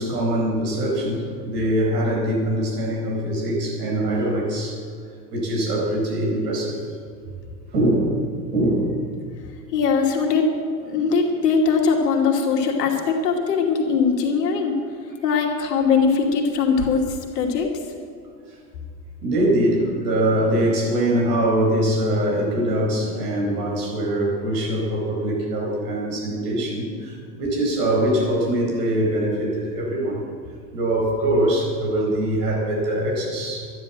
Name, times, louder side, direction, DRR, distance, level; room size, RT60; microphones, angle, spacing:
voice 1, 0.0-4.8 5.3-6.8 7.7-8.2 8.5-9.0 19.2-30.2 30.7-33.7, right 1 dB, 75° right, -1 dB, 4.7 m, -23 dB
voice 2, 9.7-10.6 10.8-14.8 15.2-17.7, left 5 dB, 75° left, 1 dB, 2.5 m, -21 dB
12.5 x 11.0 x 7.7 m, 2.3 s
hypercardioid pair, 85°, 48 cm